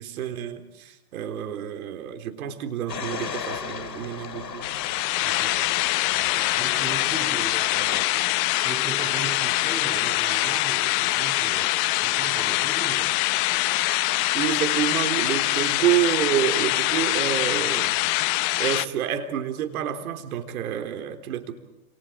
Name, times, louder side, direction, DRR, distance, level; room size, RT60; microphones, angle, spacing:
voice 1, 0.0-4.7 14.3-18.0 18.6-21.5, right 10 dB, 60° right, 7 dB, 3.8 m, -28 dB
sound 1, 2.9-8.1, left 7 dB, 85° left, 3.1 m, -36 dB
sound 2, 4.6-18.8, left 18 dB, 35° left, 0.9 m, -24 dB
voice 2, 5.2-8.2 8.6-11.7 12.0-13.2, right 3 dB, 15° right, 1 dB, 5.7 m, -38 dB
29.5 x 28.5 x 4.6 m, 0.91 s
hypercardioid pair, 130°, 48 cm